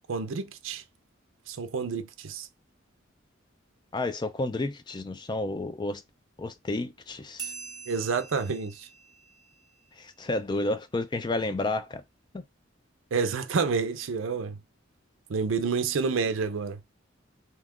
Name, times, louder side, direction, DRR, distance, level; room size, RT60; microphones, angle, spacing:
voice 1, 0.1-0.8 1.5-2.5 7.9-8.9 13.1-14.6 15.3-16.8, right 5 dB, 80° right, 0.5 m, -29 dB
voice 2, 3.9-6.0 6.4-7.5 10.0-12.0 12.3-12.4, left 2 dB, 20° left, 0.3 m, -31 dB
sound 1, 7.4-10.4, right 6 dB, 20° right, 0.9 m, -44 dB
2.8 x 2.4 x 3.5 m
head